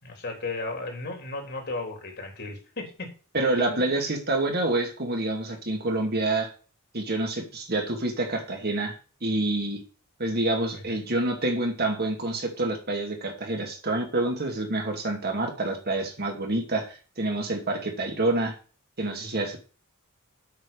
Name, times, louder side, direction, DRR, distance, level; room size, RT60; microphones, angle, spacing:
voice 1, 0.0-3.1 3.6-4.0 10.9-11.0, left 3 dB, 50° left, 2 dB, 3.5 m, -35 dB
voice 2, 3.3-6.5 6.9-8.9 9.2-9.8 10.2-18.6 19.0-19.6, right 2 dB, 45° right, 2 dB, 2.5 m, -27 dB
8.3 x 6.1 x 6.9 m, 0.38 s
head